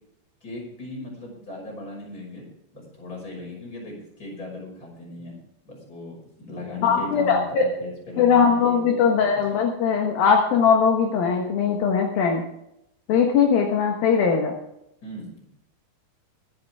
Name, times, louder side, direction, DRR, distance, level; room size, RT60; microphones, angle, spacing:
voice 1, 0.4-2.5 2.7-5.4 5.6-9.4 15.0-15.5, left 2 dB, 20° left, -2 dB, 6.3 m, -38 dB
voice 2, 6.8-7.7 8.2-12.4 13.1-14.5, left 6 dB, 65° left, 2 dB, 2.9 m, -20 dB
24.5 x 8.8 x 3.6 m, 0.83 s
omnidirectional pair, 5.1 m